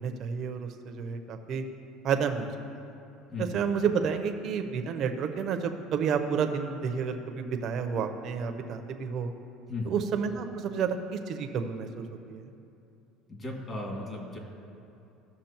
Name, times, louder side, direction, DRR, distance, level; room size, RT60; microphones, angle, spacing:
voice 1, 0.0-1.6 2.0-2.5 2.8-2.9 3.4-9.3 9.9-12.5, right 6 dB, 50° right, 6 dB, 0.8 m, -30 dB
voice 2, 13.3-14.4, left 2 dB, 25° left, -1 dB, 2.2 m, -36 dB
16.0 x 6.2 x 3.0 m, 2.8 s
supercardioid pair, 120°, 0 cm